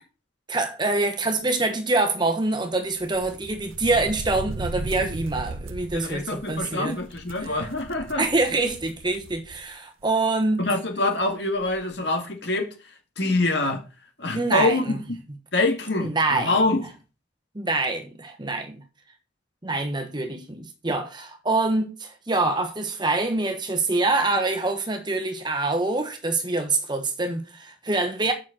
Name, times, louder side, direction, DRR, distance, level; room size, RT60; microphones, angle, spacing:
voice 1, 0.5-7.0 7.4-7.6 8.2-10.6 14.3-15.0 16.0-16.6 17.5-18.8 19.6-28.3, right 2 dB, 20° right, 1.1 m, -25 dB
sound 1, 2.9-9.7 10.0-10.1 11.2-11.3 11.6-11.8, right 2 dB, 90° right, 0.7 m, -37 dB
voice 2, 5.9-8.2 10.6-12.7 13.2-13.8 14.2-15.0 15.5-16.8, left 2 dB, 55° left, 1.9 m, -25 dB
7.3 x 6.3 x 5.8 m
head